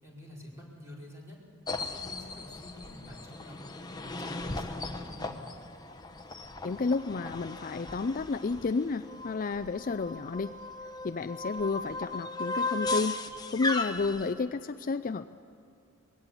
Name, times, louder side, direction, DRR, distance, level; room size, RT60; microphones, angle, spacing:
voice 1, 0.0-1.4 1.9-3.6 4.0-5.4, left 1 dB, 15° right, -4 dB, 4.7 m, -48 dB
sound 1, 1.7-14.3, left 2 dB, 20° left, 1.0 m, -37 dB
voice 2, 6.6-10.6 11.0-13.2 13.5-15.3, left 4 dB, 40° left, 10 dB, 0.4 m, -31 dB
21.5 x 17.0 x 8.4 m, 2.7 s
head